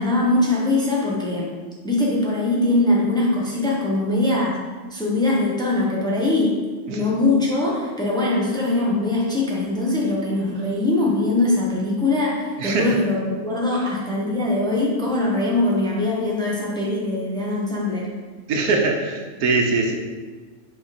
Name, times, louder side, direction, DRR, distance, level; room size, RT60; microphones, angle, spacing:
voice 1, 0.0-1.5 1.8-4.6 4.9-6.6 6.9-18.1, left 2 dB, 5° left, -4 dB, 0.9 m, -22 dB
voice 2, 12.6-13.0 18.5-20.0, right 3 dB, 85° right, 2 dB, 1.3 m, -22 dB
5.3 x 4.6 x 4.2 m, 1.4 s
omnidirectional pair, 1.5 m